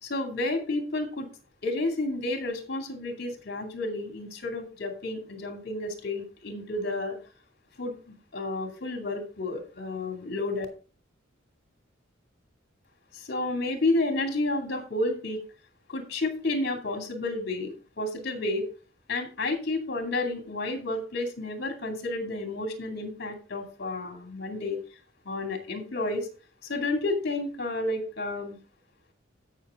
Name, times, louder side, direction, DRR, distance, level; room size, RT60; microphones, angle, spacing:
voice 1, 0.0-1.3 1.6-7.2 7.8-10.7 13.1-15.4 15.9-18.7 19.1-24.8 25.2-26.3 26.6-28.6, left 2 dB, 55° left, 4 dB, 2.5 m, -31 dB
15.0 x 6.1 x 3.7 m, 0.37 s
head